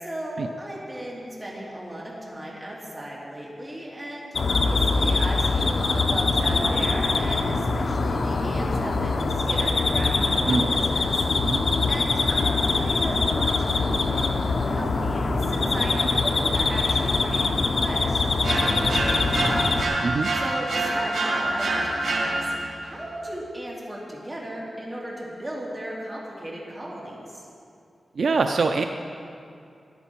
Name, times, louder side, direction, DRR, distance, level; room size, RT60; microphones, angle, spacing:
voice 1, 0.0-11.2 11.9-19.7 20.3-22.4 22.8-27.5, right 1 dB, 20° right, -5 dB, 2.8 m, -36 dB
sound 1, 4.3-19.8, left 3 dB, 75° left, 0.8 m, -23 dB
sound 2, 18.4-22.8, right 2 dB, 90° right, 2.3 m, -26 dB
voice 2, 28.2-28.8, right 4 dB, 70° right, 6 dB, 0.4 m, -23 dB
15.0 x 10.5 x 4.6 m, 2.5 s
wide cardioid pair, 125°, 0 cm